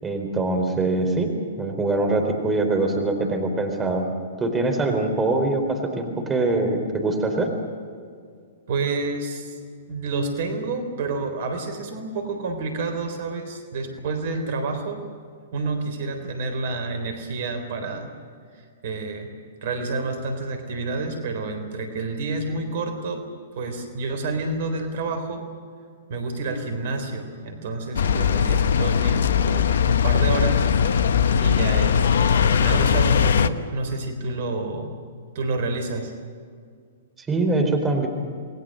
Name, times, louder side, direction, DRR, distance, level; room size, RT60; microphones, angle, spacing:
voice 1, 0.0-1.3 1.6-4.0 4.4-7.5 37.2-38.1, right 2 dB, 15° right, 4 dB, 4.2 m, -23 dB
voice 2, 8.7-9.6 9.9-15.0 15.5-18.1 18.5-19.3 19.6-25.5 26.1-30.7 31.4-34.9 35.3-36.1, right 3 dB, 55° right, 7 dB, 3.8 m, -29 dB
sound 1, 27.9-33.5, left 7 dB, 65° left, 0.9 m, -20 dB
28.0 x 21.0 x 6.6 m, 2.1 s
figure-of-eight pair, 110°, 0 cm